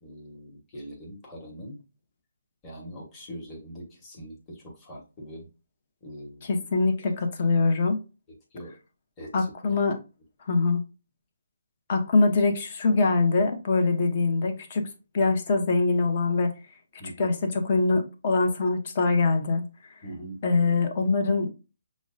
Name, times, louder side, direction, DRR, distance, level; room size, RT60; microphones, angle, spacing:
voice 1, 0.0-1.8 2.6-5.5 6.0-6.5 8.5-8.7 9.2-9.8 17.0-17.3 20.0-20.4, equal, 15° left, 1.1 m, -42 dB
voice 2, 6.4-8.0 9.3-10.0 10.4-10.8 11.9-14.9 15.1-16.5 17.2-19.6 20.4-21.5, left 3 dB, 40° left, 0.7 m, -23 dB
6.0 x 2.1 x 2.5 m
hypercardioid pair, 155°, 0 cm